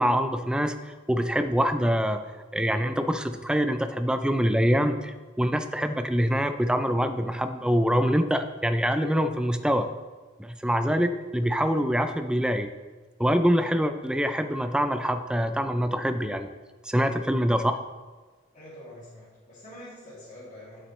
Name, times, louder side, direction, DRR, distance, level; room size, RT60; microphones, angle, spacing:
voice 1, 0.0-2.2 2.5-9.9 10.4-12.7 13.2-16.5 16.8-17.8, equal, 5° right, 8 dB, 0.3 m, -25 dB
voice 2, 18.5-20.9, left 1 dB, 40° left, -9 dB, 2.3 m, -45 dB
11.0 x 6.0 x 3.2 m, 1.4 s
head